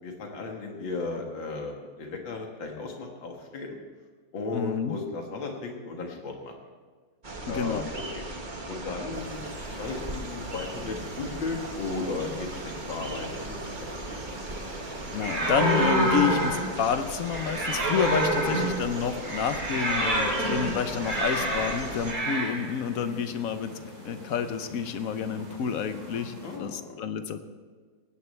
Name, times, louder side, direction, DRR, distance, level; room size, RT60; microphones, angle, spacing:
voice 1, 0.0-3.8 4.3-6.6 7.5-8.2 8.7-9.4 9.7-14.1 26.4-27.0, left 3 dB, 85° left, 1 dB, 2.5 m, -35 dB
voice 2, 4.5-5.0 7.5-7.8 15.1-23.7 24.0-26.3 26.6-27.4, left 7 dB, 55° left, 10 dB, 1.1 m, -29 dB
sound 1, 7.2-22.1, right 2 dB, 25° right, 1.4 m, -38 dB
sound 2, 9.1-26.6, right 1 dB, 50° right, 3.8 m, -31 dB
19.0 x 16.0 x 3.3 m, 1.6 s
omnidirectional pair, 2.0 m